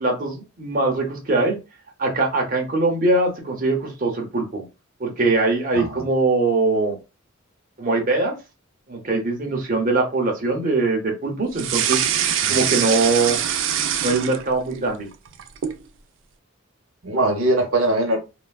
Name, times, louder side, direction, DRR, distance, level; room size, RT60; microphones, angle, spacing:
voice 1, 0.0-1.6 2.0-4.6 5.0-7.0 7.8-8.4 8.9-12.0 12.5-13.4 14.0-15.1, right 3 dB, 40° right, 0.7 m, -22 dB
voice 2, 5.7-6.1 12.4-12.6 17.0-18.2, right 1 dB, 85° right, 0.8 m, -21 dB
sound 1, 11.5-14.8 15.1-15.8, right 9 dB, 65° right, 0.3 m, -23 dB
3.2 x 2.2 x 2.2 m
head